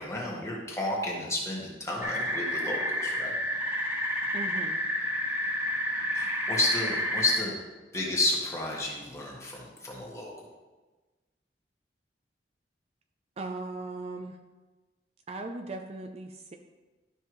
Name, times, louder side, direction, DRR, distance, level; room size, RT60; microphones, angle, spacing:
voice 1, 0.0-3.3 6.1-7.6 7.9-10.5, left 1 dB, 15° left, -3 dB, 1.7 m, -31 dB
sound 1, 2.0-7.4, left 1 dB, 10° right, 1.5 m, -30 dB
voice 2, 4.3-4.8 13.4-14.4 15.3-16.6, right 2 dB, 35° right, 4 dB, 0.5 m, -38 dB
12.0 x 5.5 x 3.1 m, 1.2 s
head